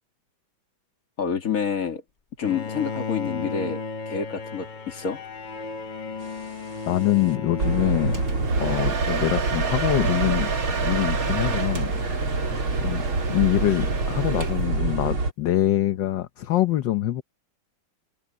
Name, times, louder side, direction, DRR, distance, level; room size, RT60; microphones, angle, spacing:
voice 1, 1.2-2.0 2.4-5.2, left 6 dB, 45° left, 2.3 m, -28 dB
Bowed string instrument, 2.4-9.2, left 4 dB, 90° left, 0.4 m, -34 dB
sound 1, 6.4-6.7 7.1-7.2 7.6-15.3, right 3 dB, 90° right, 4.7 m, -26 dB
voice 2, 6.9-8.2 8.6-10.5 10.8-11.9 12.8-13.0 13.3-17.2, left 14 dB, 65° left, 1.5 m, -24 dB
Domestic sounds home sounds, 8.1-14.8, right 6 dB, 45° right, 2.3 m, -31 dB
omnidirectional pair, 2.2 m